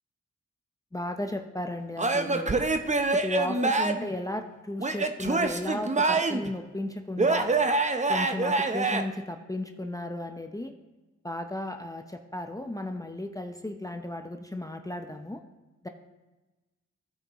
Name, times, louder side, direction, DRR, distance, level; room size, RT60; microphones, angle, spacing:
voice 1, 0.9-2.6 3.1-7.5 8.1-10.7 11.2-15.4 15.8-15.9, left 1 dB, 10° left, 5 dB, 0.6 m, -35 dB
Male speech man speaking / Yell / Laughter, 2.0-4.1 4.8-6.5 7.2-9.0, right 3 dB, 25° right, 0.7 m, -25 dB
15.5 x 5.2 x 3.0 m, 1.2 s
cardioid pair, 60°, 30 cm